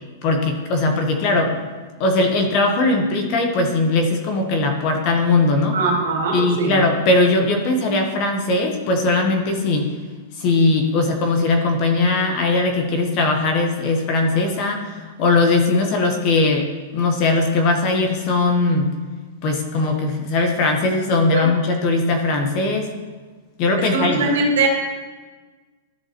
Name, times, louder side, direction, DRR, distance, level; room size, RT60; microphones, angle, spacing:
voice 1, 0.2-1.6 2.0-5.8 6.3-9.9 10.4-18.9 19.4-22.9 23.6-24.3, left 3 dB, 30° left, 4 dB, 0.9 m, -19 dB
voice 2, 5.7-6.8 21.3-21.5 23.8-24.7, right 3 dB, 75° right, 1 dB, 2.1 m, -21 dB
13.5 x 6.2 x 2.9 m, 1.4 s
supercardioid pair, 175°, 0 cm